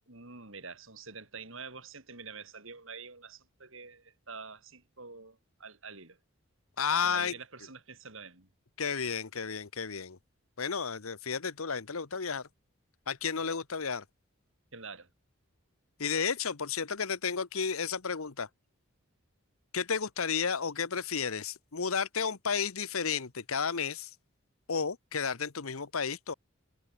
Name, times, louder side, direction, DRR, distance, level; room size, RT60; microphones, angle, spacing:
voice 1, 0.1-6.2 7.0-8.5 14.7-15.1, right 5 dB, 65° right, 3.9 m, -47 dB
voice 2, 6.8-7.3 8.8-10.2 10.6-12.5 13.1-14.0 16.0-18.5 19.7-24.1 24.7-26.3, left 6 dB, 80° left, 1.1 m, -32 dB
head